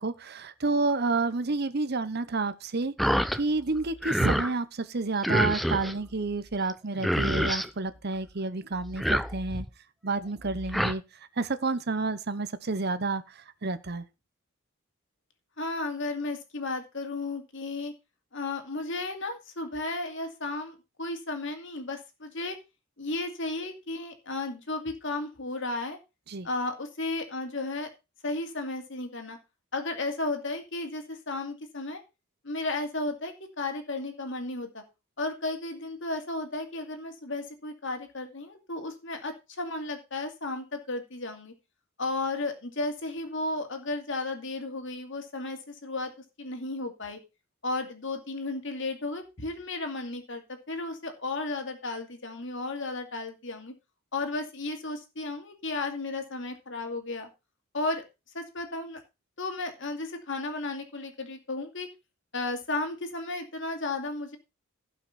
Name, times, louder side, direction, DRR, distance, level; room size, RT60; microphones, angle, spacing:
voice 1, 0.0-9.7 10.0-11.0 11.4-14.0 26.3-26.5, right 3 dB, 45° right, 0.8 m, -30 dB
sound 1, 3.0-3.4 3.8-4.5 5.2-5.9 6.7-6.8 7.0-7.7 8.8-9.7 10.4-10.9, equal, ahead, 0.5 m, -27 dB
voice 2, 15.6-17.9 18.3-22.6 23.0-26.0 26.4-27.9 28.2-29.4 29.7-32.0 32.4-34.8 35.2-41.5 42.0-46.1 46.4-47.2 47.6-53.7 54.1-57.3 57.7-58.0 58.3-59.0 59.4-61.9 62.3-64.4, left 2 dB, 55° left, 2.5 m, -34 dB
16.5 x 5.9 x 4.2 m
head